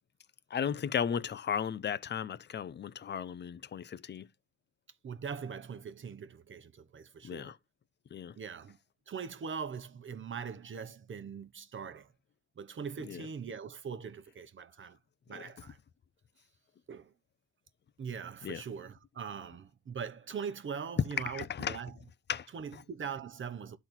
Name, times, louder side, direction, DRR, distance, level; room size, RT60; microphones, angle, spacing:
voice 1, 0.5-4.3 7.2-7.6 8.1-8.4 13.0-13.3 15.3-15.4 18.4-18.6 21.3-21.8 22.3-22.5 22.7-22.8, left 8 dB, 35° left, 0.6 m, -35 dB
voice 2, 5.0-7.5 8.4-8.8 9.1-12.1 12.6-15.0 15.3-15.8 16.9-17.1 18.0-21.9 22.5-23.8, right 6 dB, 40° right, 1.0 m, -41 dB
12.0 x 4.1 x 4.3 m
cardioid pair, 90°, 30 cm